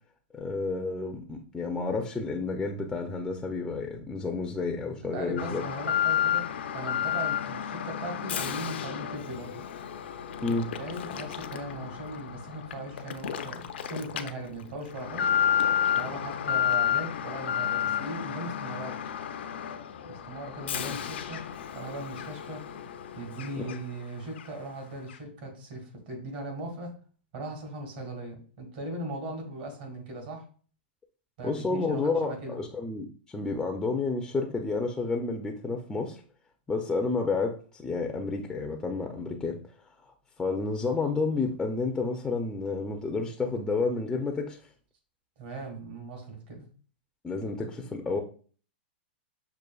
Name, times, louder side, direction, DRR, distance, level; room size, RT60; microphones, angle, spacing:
voice 1, 0.3-5.6 10.4-10.7 31.4-36.2 36.7-39.6 40.1-44.6 47.2-48.2, left 3 dB, 10° left, 2 dB, 0.3 m, -30 dB
voice 2, 5.1-6.5 6.7-9.6 10.5-15.3 15.9-19.0 20.0-21.4 21.7-22.7 23.1-27.0 27.3-30.5 31.4-32.6 45.4-46.7, right 2 dB, 60° right, 2 dB, 1.6 m, -39 dB
Alarm, 5.4-24.0 24.4-24.5 25.1-25.2, left 9 dB, 80° left, 0.4 m, -31 dB
6.1 x 2.4 x 2.2 m, 0.41 s
hypercardioid pair, 140°, 6 cm